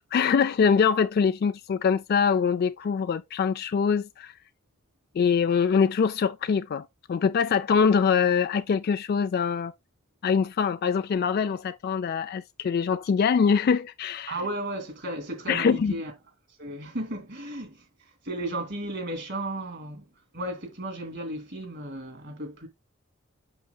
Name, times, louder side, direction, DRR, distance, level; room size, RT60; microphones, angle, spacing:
voice 1, 0.1-4.3 5.2-9.7 10.2-14.3 15.5-15.9, left 6 dB, 50° left, 0.3 m, -24 dB
voice 2, 14.3-16.1 16.6-20.1 20.3-22.7, right 1 dB, 60° right, 2.6 m, -34 dB
8.0 x 6.5 x 2.2 m
head